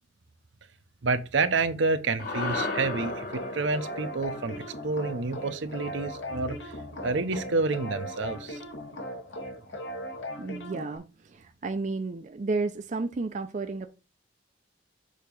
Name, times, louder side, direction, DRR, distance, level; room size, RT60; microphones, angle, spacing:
voice 1, 1.0-6.7 7.0-8.6, right 3 dB, 75° right, 0.8 m, -29 dB
sound 1, 2.2-6.7, left 3 dB, 50° left, 1.3 m, -36 dB
sound 2, 3.0-11.0, equal, 75° left, 1.4 m, -38 dB
voice 2, 10.4-13.9, right 3 dB, 40° right, 0.4 m, -32 dB
6.5 x 2.9 x 5.2 m
head